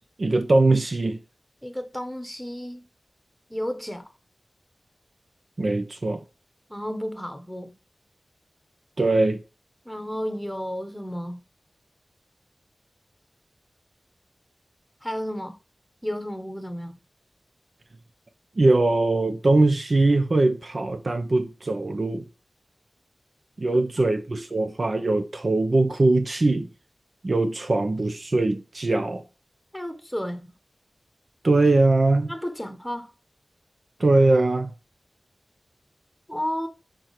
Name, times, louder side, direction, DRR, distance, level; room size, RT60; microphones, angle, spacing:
voice 1, 0.2-1.2 5.6-6.2 9.0-9.4 18.6-22.2 23.6-26.7 27.2-29.2 31.4-32.3 34.0-34.7, right 2 dB, 55° right, 0.9 m, -21 dB
voice 2, 1.6-2.8 3.5-4.0 6.7-7.7 9.8-11.4 15.0-15.6 16.0-17.0 29.7-30.5 32.3-33.1 36.3-36.7, equal, 5° left, 1.3 m, -32 dB
6.2 x 4.5 x 4.9 m
wide cardioid pair, 70°, 0 cm